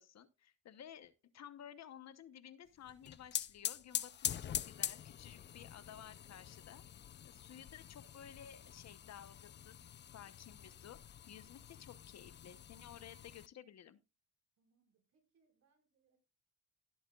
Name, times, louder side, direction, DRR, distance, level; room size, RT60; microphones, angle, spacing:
voice 1, 0.0-9.8 10.1-11.0 11.3-14.0, left 9 dB, 60° left, 14 dB, 1.0 m, -55 dB
sound 1, 2.9-13.5, left 10 dB, 35° left, 0.4 m, -45 dB
voice 2, 14.6-16.2, right 5 dB, 65° right, 1 dB, 5.4 m, -78 dB
18.0 x 7.8 x 2.4 m, 0.28 s
cardioid pair, 90°, 30 cm